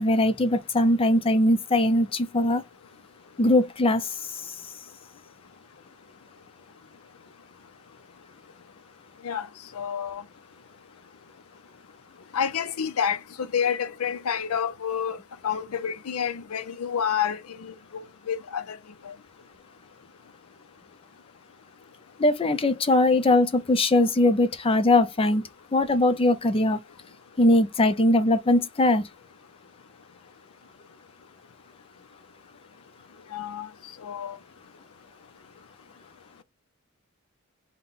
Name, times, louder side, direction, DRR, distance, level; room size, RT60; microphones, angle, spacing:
voice 1, 0.0-2.6 3.4-4.5 22.2-25.4 25.7-26.8 27.4-29.0, left 1 dB, 25° left, 0.5 m, -21 dB
voice 2, 9.7-10.2 12.3-15.2 15.4-18.8 19.0-19.1 33.3-33.7 34.0-34.4, left 8 dB, 90° left, 0.5 m, -29 dB
5.3 x 2.3 x 3.9 m
head